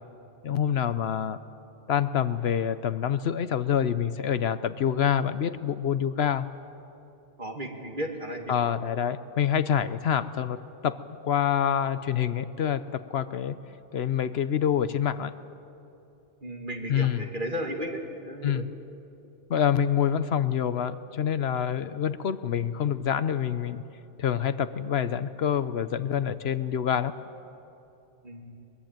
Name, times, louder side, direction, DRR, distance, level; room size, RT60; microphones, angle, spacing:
voice 1, 0.4-1.4 1.9-6.5 8.5-13.6 13.9-15.3 16.9-17.3 18.4-18.7 19.5-23.8 24.2-27.2, left 8 dB, 70° left, 13 dB, 1.0 m, -26 dB
voice 2, 7.4-8.6 16.4-18.7 28.2-28.5, equal, 45° right, 2 dB, 2.5 m, -34 dB
22.0 x 22.0 x 9.0 m, 2.8 s
omnidirectional pair, 1.1 m